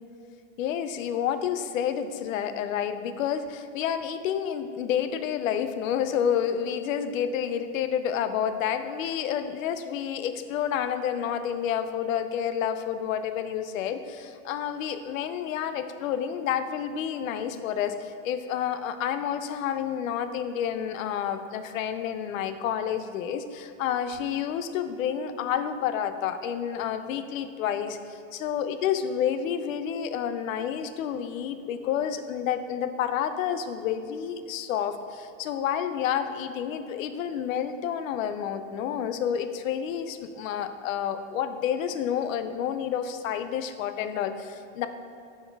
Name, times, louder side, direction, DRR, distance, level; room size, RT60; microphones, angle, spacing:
voice 1, 0.6-44.9, left 8 dB, 90° left, 10 dB, 0.6 m, -29 dB
7.2 x 4.3 x 3.5 m, 2.5 s
supercardioid pair, 170°, 39 cm